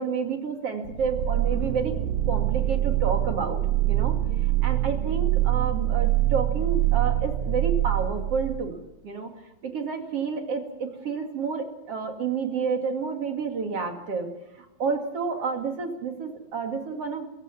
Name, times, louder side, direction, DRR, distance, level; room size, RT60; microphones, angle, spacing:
voice 1, 0.0-1.9 2.3-3.6 3.9-4.2 4.6-8.8 9.0-9.3 9.6-14.3 14.6-17.3, right 5 dB, 45° right, 4 dB, 3.0 m, -30 dB
sound 1, 0.9-8.7, right 13 dB, 75° right, 2.8 m, -24 dB
23.0 x 16.0 x 7.1 m, 0.90 s
omnidirectional pair, 4.2 m